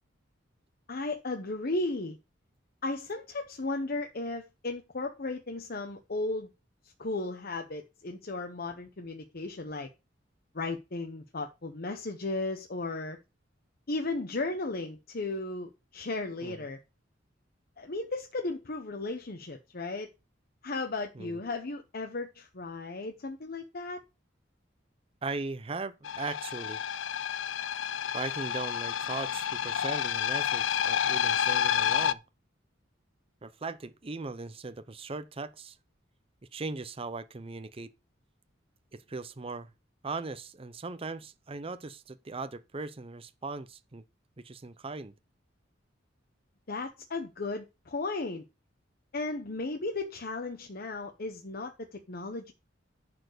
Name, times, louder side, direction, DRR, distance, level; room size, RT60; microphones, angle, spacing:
voice 1, 0.9-2.2 2.8-6.5 6.8-9.9 10.5-13.2 13.9-16.8 17.8-20.1 20.6-24.0 46.7-48.4 49.1-52.5, left 2 dB, 50° left, 0.9 m, -35 dB
voice 2, 25.2-26.8 28.1-32.2 33.4-35.8 36.5-37.9 38.9-39.7 40.0-44.0 44.4-45.1, right 3 dB, 30° right, 0.6 m, -38 dB
sound 1, 26.0-32.1, left 9 dB, 85° left, 0.5 m, -29 dB
10.5 x 4.4 x 6.6 m
head